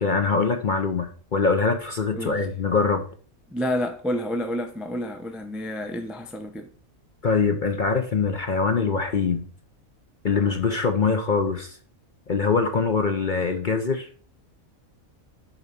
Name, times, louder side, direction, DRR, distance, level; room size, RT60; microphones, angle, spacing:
voice 1, 0.0-3.0 7.2-9.5 10.2-11.8 12.3-14.1, left 4 dB, 45° left, 0.7 m, -23 dB
voice 2, 3.5-6.7, left 1 dB, ahead, 0.4 m, -29 dB
7.0 x 4.1 x 5.8 m
omnidirectional pair, 1.5 m